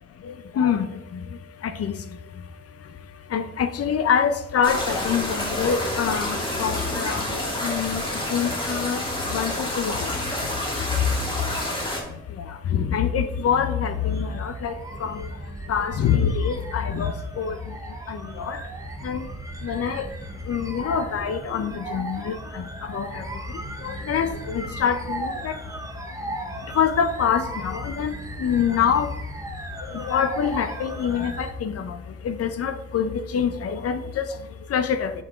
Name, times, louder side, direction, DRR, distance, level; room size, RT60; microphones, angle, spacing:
voice 1, 0.6-0.9 1.6-1.9 3.3-8.0 8.3-9.0 9.3-10.1 12.7-14.7 15.0-15.2 15.7-17.6 18.1-18.6 19.0-19.2 19.6-20.0 20.5-22.6 22.9-23.2 23.8-25.6 26.8-28.1 28.4-29.1 29.9-31.9 32.2-34.3 34.7-35.1, left 7 dB, 50° left, 10 dB, 0.7 m, -25 dB
sound 1, 4.6-12.0, left 1 dB, 15° left, 2.0 m, -28 dB
sound 2, 13.8-31.5, right 2 dB, 10° right, 0.8 m, -37 dB
6.9 x 6.2 x 3.6 m, 0.91 s
cardioid pair, 100°, 30 cm